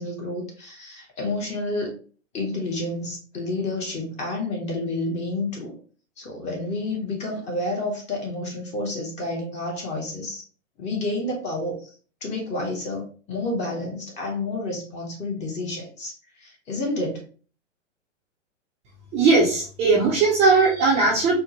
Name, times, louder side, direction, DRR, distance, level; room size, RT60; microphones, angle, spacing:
voice 1, 0.0-2.0 2.3-5.8 6.2-10.4 10.8-11.9 12.2-17.2, left 2 dB, 20° left, 0 dB, 0.7 m, -30 dB
voice 2, 19.1-21.4, right 4 dB, 15° right, -4 dB, 0.5 m, -18 dB
4.4 x 2.0 x 2.9 m, 0.39 s
hypercardioid pair, 140°, 39 cm